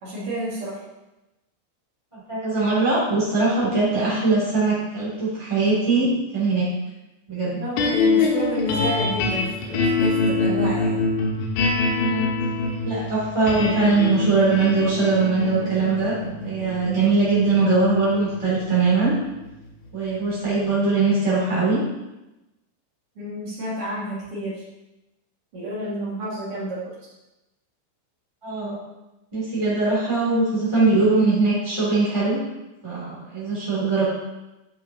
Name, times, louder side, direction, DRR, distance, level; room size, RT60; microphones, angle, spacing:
voice 1, 0.0-0.8 7.4-10.9 23.1-24.6 25.5-26.8, equal, 60° right, -8 dB, 1.6 m, -30 dB
voice 2, 2.1-6.1 6.3-6.7 7.3-7.6 12.0-12.3 12.8-16.1 16.4-19.1 19.9-21.8 28.4-28.8 29.3-32.4 32.8-34.0, right 3 dB, 25° right, -9 dB, 0.6 m, -21 dB
sound 1, 7.8-20.1, left 3 dB, 85° left, 3.5 m, -25 dB
10.5 x 5.5 x 2.8 m, 0.99 s
omnidirectional pair, 5.6 m